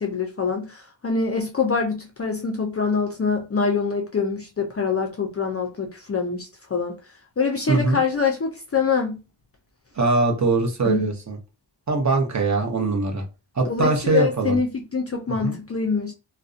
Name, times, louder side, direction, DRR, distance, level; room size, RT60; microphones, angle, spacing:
voice 1, 0.0-7.0 7.4-9.2 10.8-11.1 13.7-16.1, left 5 dB, 35° left, 0.4 m, -25 dB
voice 2, 9.9-11.4 11.9-13.2 13.6-14.6 15.4-15.5, right 3 dB, 40° right, 0.7 m, -22 dB
2.5 x 2.1 x 2.4 m
wide cardioid pair, 95°, 46 cm